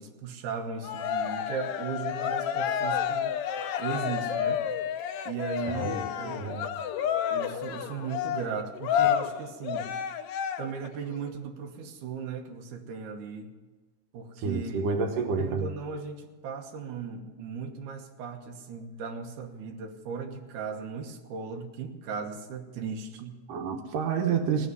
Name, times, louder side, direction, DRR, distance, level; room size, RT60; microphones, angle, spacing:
voice 1, 0.0-3.4 3.8-4.7 5.3-6.7 7.3-9.9 10.6-13.5 14.1-14.9 15.4-23.4, right 5 dB, 75° right, 2 dB, 2.6 m, -37 dB
Cheering, 0.8-10.9, left 9 dB, 85° left, 1.3 m, -30 dB
voice 2, 5.7-6.6 14.4-15.7 23.5-24.7, right 5 dB, 90° right, 4 dB, 2.8 m, -29 dB
18.0 x 6.5 x 9.4 m, 1.2 s
omnidirectional pair, 3.6 m